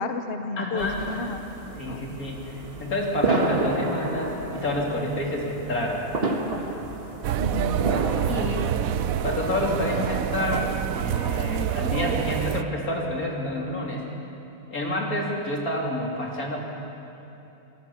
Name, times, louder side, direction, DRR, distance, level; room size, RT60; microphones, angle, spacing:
voice 1, 0.0-1.4 1.9-2.0 7.4-7.9 15.0-15.3, left 3 dB, 45° left, 8 dB, 1.1 m, -31 dB
voice 2, 0.6-1.0 1.8-6.0 8.3-8.7 9.2-10.7 10.9-14.0 14.7-16.6, left 1 dB, 90° left, -1 dB, 3.7 m, -28 dB
sound 1, 0.8-9.9, right 2 dB, 45° right, 1.9 m, -31 dB
sound 2, 7.2-12.6, right 10 dB, 75° right, 1.1 m, -27 dB
26.0 x 18.0 x 7.2 m, 2.9 s
omnidirectional pair, 1.5 m